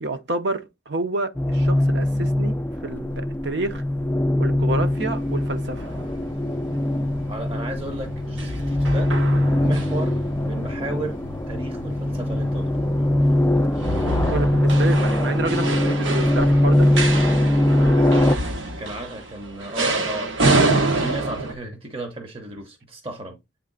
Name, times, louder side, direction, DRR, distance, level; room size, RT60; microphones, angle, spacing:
voice 1, 0.0-2.6 2.8-3.8 4.4-5.9 9.5-9.8 14.3-16.9, right 2 dB, 60° right, 0.8 m, -29 dB
sound 1, 1.3-18.3, left 1 dB, 10° left, 0.4 m, -21 dB
sound 2, 4.9-21.5, right 2 dB, 80° right, 1.1 m, -28 dB
voice 2, 7.3-9.1 9.6-10.2 10.4-11.2 11.5-13.1 18.5-20.6 21.0-23.4, right 1 dB, 30° right, 0.7 m, -34 dB
8.0 x 3.2 x 3.8 m
head